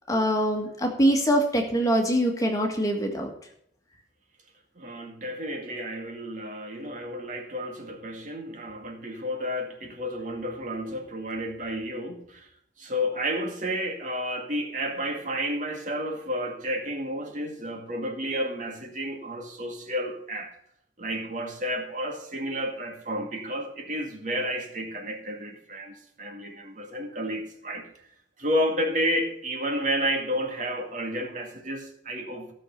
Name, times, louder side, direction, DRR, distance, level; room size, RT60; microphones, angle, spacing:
voice 1, 0.1-3.3, equal, 20° left, 2 dB, 1.7 m, -23 dB
voice 2, 4.8-12.5 12.8-20.5 21.0-28.1 28.4-32.5, equal, 45° right, 3 dB, 2.2 m, -31 dB
15.5 x 6.5 x 5.9 m, 0.71 s
head